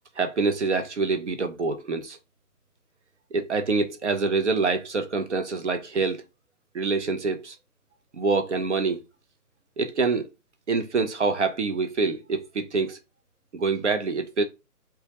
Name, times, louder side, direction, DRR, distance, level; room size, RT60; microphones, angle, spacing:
voice 1, 0.2-2.2 3.3-6.2 6.7-7.6 8.1-9.0 9.8-10.3 10.7-13.0 13.5-14.4, right 4 dB, 50° right, 0.5 m, -26 dB
2.2 x 2.1 x 2.7 m
hypercardioid pair, 160°, 46 cm